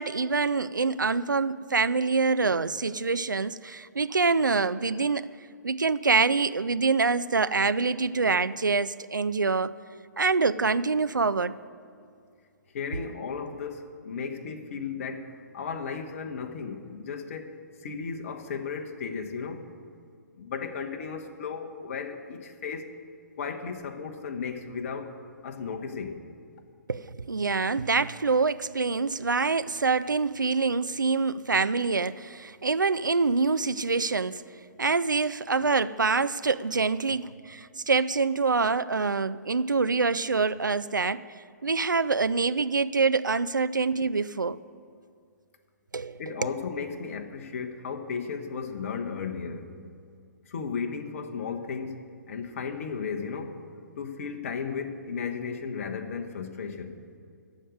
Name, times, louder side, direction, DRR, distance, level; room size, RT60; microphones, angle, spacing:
voice 1, 0.0-5.3 5.6-9.8 10.2-11.6 26.9-34.4 34.8-41.2 41.6-44.6 45.9-46.5, right 4 dB, 85° right, 0.4 m, -25 dB
voice 2, 12.7-19.7 20.4-22.9 23.4-26.3 46.2-49.7 50.5-53.6 54.0-57.0, left 5 dB, 45° left, 1.2 m, -35 dB
14.5 x 5.2 x 9.3 m
figure-of-eight pair, 125°, 10 cm